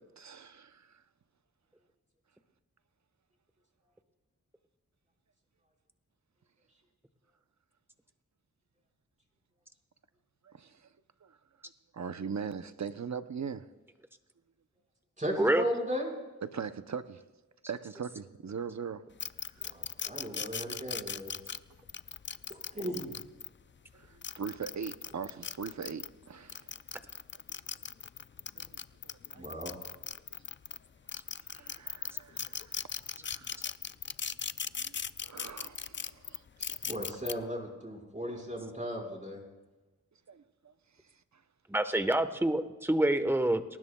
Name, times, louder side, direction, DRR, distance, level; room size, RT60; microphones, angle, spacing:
voice 1, 0.2-1.0 10.4-10.9 11.2-11.4 11.9-13.7 16.4-17.2 17.7-19.0 23.9-26.8 27.5-27.6 28.6-28.7 29.0-29.4 31.5-32.8 33.2-33.6 34.8-34.9 35.2-36.4 37.0-37.1 40.3-40.7, right 6 dB, 65° right, 0.7 m, -41 dB
voice 2, 15.2-16.1 19.6-21.3 22.5-23.1 29.3-29.7 36.6-39.4, equal, 25° right, 5.1 m, -36 dB
sound 1, 19.2-23.5 24.1-26.1 26.5-30.8 31.1-37.3, left 6 dB, 40° left, 0.4 m, -38 dB
voice 3, 41.7-43.8, right 1 dB, 5° right, 1.1 m, -27 dB
29.5 x 20.0 x 2.3 m
wide cardioid pair, 80°, 31 cm